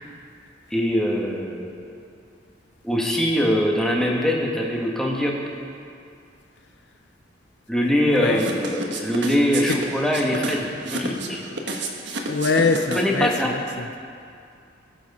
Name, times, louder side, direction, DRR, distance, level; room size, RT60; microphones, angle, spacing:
voice 1, 0.7-1.9 2.8-5.3 7.7-11.4 12.9-13.5, equal, 5° left, -2 dB, 1.4 m, -23 dB
voice 2, 8.0-8.4 9.7-9.8 12.3-14.0, left 3 dB, 60° left, 5 dB, 0.7 m, -23 dB
sound 1, 8.3-13.3, right 2 dB, 65° right, 1.3 m, -30 dB
18.5 x 7.8 x 5.4 m, 2.4 s
head